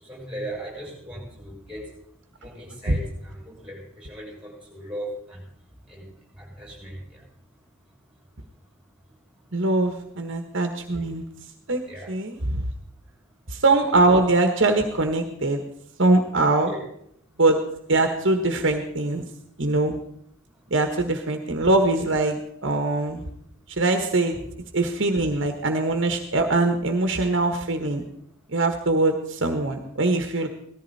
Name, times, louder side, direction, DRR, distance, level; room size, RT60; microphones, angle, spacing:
voice 1, 0.0-1.9 2.4-5.5 5.9-6.1 6.4-7.2 11.9-12.2 16.6-16.9 28.1-28.2, right 1 dB, 5° right, -4 dB, 7.6 m, -38 dB
voice 2, 9.5-11.2 11.7-11.8 12.1-12.6 13.5-15.6 16.0-16.7 17.4-17.6 17.9-19.2 19.6-19.9 20.7-23.2 23.7-24.4 24.7-28.0 28.5-30.5, right 2 dB, 60° right, 5 dB, 1.4 m, -22 dB
18.0 x 14.5 x 4.2 m, 0.72 s
head